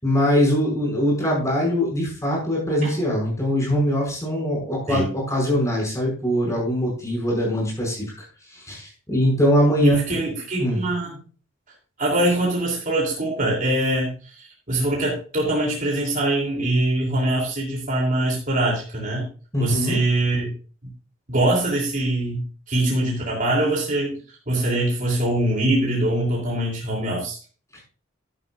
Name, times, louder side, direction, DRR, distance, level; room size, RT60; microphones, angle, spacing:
voice 1, 0.0-8.1 8.5-9.9 10.6-10.8 19.5-20.0 27.7-27.8, equal, 15° left, -2 dB, 6.2 m, -22 dB
voice 2, 9.8-11.1 12.0-19.3 19.6-20.5 21.3-24.2 24.5-27.4, right 1 dB, 45° right, -2 dB, 3.2 m, -23 dB
11.5 x 11.0 x 2.5 m, 0.39 s
head